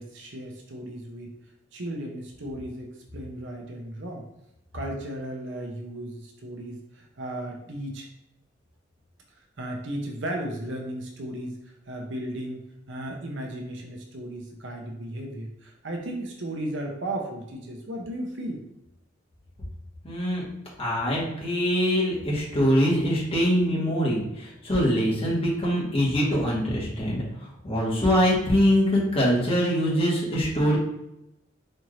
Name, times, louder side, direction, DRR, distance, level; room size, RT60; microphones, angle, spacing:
voice 1, 0.0-1.3 1.7-4.2 4.7-8.1 9.6-11.6 11.9-18.6, right 1 dB, 70° right, 1 dB, 0.8 m, -35 dB
voice 2, 20.0-20.4 20.8-27.2 27.6-30.8, equal, 30° left, -5 dB, 1.3 m, -23 dB
4.3 x 2.6 x 3.1 m, 0.87 s
head